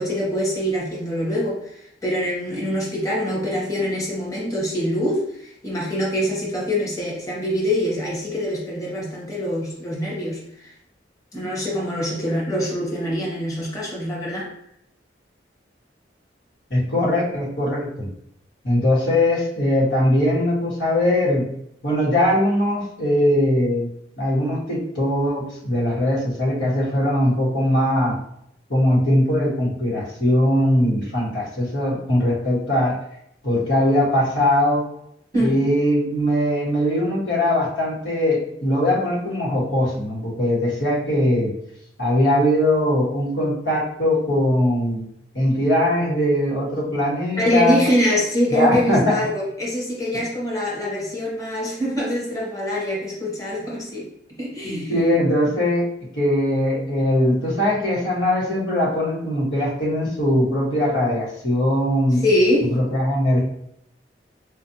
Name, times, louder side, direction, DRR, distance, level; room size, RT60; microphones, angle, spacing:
voice 1, 0.0-10.7 11.3-14.5 35.3-35.6 47.4-54.1 54.4-54.9 62.2-62.7, equal, 20° left, -4 dB, 0.9 m, -24 dB
voice 2, 16.7-18.1 18.6-21.4 21.8-23.9 24.2-28.2 28.7-33.0 33.4-34.8 35.4-41.5 42.0-45.0 45.3-47.8 48.5-49.2 54.6-55.8 56.1-62.2 62.7-63.4, left 1 dB, 90° left, -5 dB, 1.5 m, -20 dB
4.0 x 2.5 x 2.8 m, 0.72 s
head